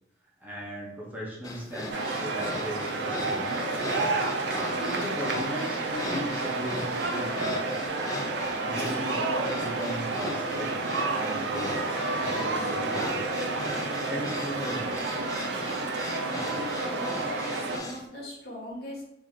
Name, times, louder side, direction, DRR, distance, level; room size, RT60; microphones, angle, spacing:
voice 1, 0.4-3.7 4.8-7.6 8.6-10.8 11.1-11.8 12.1-13.4 14.0-15.2, equal, 10° right, -5 dB, 0.7 m, -38 dB
sound 1, 1.4-18.1, left 2 dB, 20° left, 0.3 m, -38 dB
sound 2, 1.9-17.8, right 3 dB, 90° right, 0.5 m, -30 dB
voice 2, 16.2-19.0, equal, 60° left, -5 dB, 1.3 m, -40 dB
2.9 x 2.6 x 3.6 m, 0.79 s
head